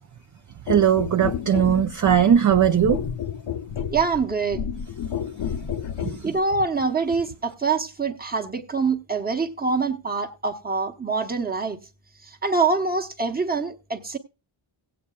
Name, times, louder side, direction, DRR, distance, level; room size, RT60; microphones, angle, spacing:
sound 1, 0.7-6.2 7.1-7.3, left 8 dB, 60° left, 0.7 m, -31 dB
voice 1, 0.7-3.0 6.0-6.1, right 9 dB, 40° right, 0.5 m, -19 dB
voice 2, 3.9-4.6 6.2-11.8 12.2-14.2, right 4 dB, 20° right, 0.9 m, -25 dB
17.5 x 8.6 x 2.3 m
wide cardioid pair, 180°, 48 cm